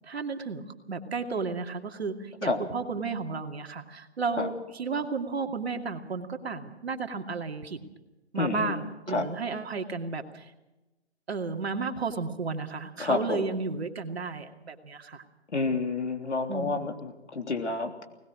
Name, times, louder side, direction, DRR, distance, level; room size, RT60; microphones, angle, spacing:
voice 1, 0.0-7.8 8.3-10.5 11.3-15.2 16.5-16.9, right 4 dB, 65° right, 5 dB, 2.5 m, -33 dB
voice 2, 8.3-8.8 9.1-9.3 13.0-13.5 15.5-18.1, left 3 dB, 80° left, 4 dB, 3.3 m, -29 dB
21.0 x 19.5 x 6.2 m, 1.0 s
hypercardioid pair, 155°, 34 cm